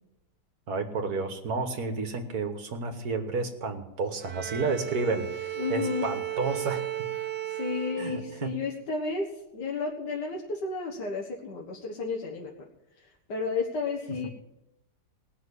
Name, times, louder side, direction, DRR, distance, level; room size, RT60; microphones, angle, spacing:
voice 1, 0.7-6.9 8.0-8.5 14.1-14.2, right 4 dB, 65° right, 6 dB, 1.9 m, -31 dB
Bowed string instrument, 4.2-8.6, right 13 dB, 80° right, 1.4 m, -35 dB
voice 2, 5.6-6.1 7.5-12.7 13.3-14.3, left 4 dB, 80° left, -1 dB, 2.1 m, -32 dB
18.5 x 6.3 x 8.3 m, 0.88 s
omnidirectional pair, 1.8 m